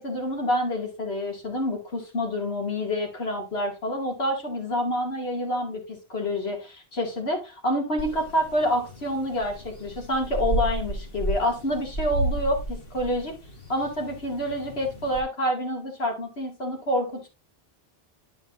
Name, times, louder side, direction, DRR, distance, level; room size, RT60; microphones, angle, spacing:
voice 1, 0.0-13.3 13.7-17.3, equal, 85° left, 1 dB, 2.5 m, -28 dB
sound 1, 8.0-15.2, right 1 dB, 65° left, 2.0 m, -33 dB
11.5 x 5.8 x 2.5 m, 0.28 s
omnidirectional pair, 1.0 m